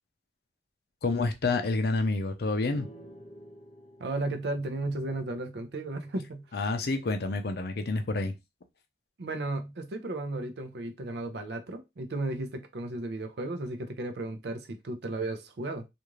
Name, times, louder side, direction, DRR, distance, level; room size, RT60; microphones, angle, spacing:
voice 1, 1.0-2.9 6.5-8.4, left 3 dB, 55° left, 0.5 m, -28 dB
sound 1, 2.7-6.3, equal, 30° left, 0.7 m, -52 dB
voice 2, 4.0-6.4 9.2-15.9, right 2 dB, 65° right, 0.5 m, -34 dB
2.5 x 2.4 x 3.0 m
head